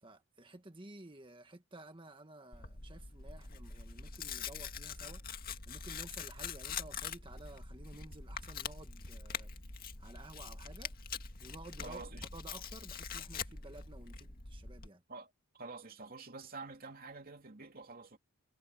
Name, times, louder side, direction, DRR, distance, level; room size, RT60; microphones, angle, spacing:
voice 1, 0.0-9.5 10.0-10.9 11.4-12.0 12.3-15.0, right 2 dB, 25° right, 1.7 m, -53 dB
Tearing, 2.5-14.9, left 6 dB, 45° left, 2.2 m, -44 dB
voice 2, 11.8-12.3 15.1-18.2, right 3 dB, 45° right, 2.8 m, -48 dB
head